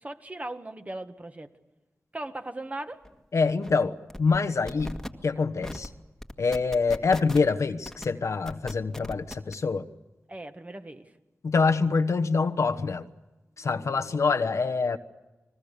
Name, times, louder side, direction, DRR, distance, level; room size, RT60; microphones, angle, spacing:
voice 1, 0.0-1.5 2.1-3.0 10.3-11.1, right 2 dB, 25° right, 7 dB, 1.6 m, -38 dB
sound 1, 3.0-3.1 3.4-3.7 4.1-4.4 4.7-5.1 5.6-5.9 6.2-7.5 7.8-8.0 8.5-9.5, left 1 dB, 5° left, 1.7 m, -38 dB
voice 2, 3.3-5.9 6.4-9.8 11.4-13.0 13.6-15.0, left 4 dB, 70° left, 8 dB, 1.1 m, -25 dB
29.5 x 21.0 x 6.7 m, 1.1 s
wide cardioid pair, 70°, 5 cm